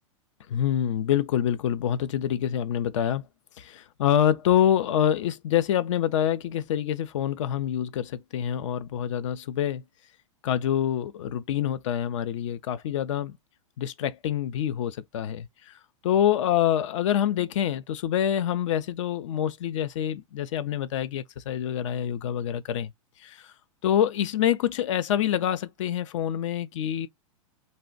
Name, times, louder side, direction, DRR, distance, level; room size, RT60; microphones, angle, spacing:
voice 1, 0.5-3.2 3.6-9.8 10.4-13.4 13.8-15.7 16.0-22.9 23.2-23.4 23.8-27.1, left 10 dB, 65° left, 0.5 m, -26 dB
2.5 x 2.1 x 3.8 m
hypercardioid pair, 120°, 17 cm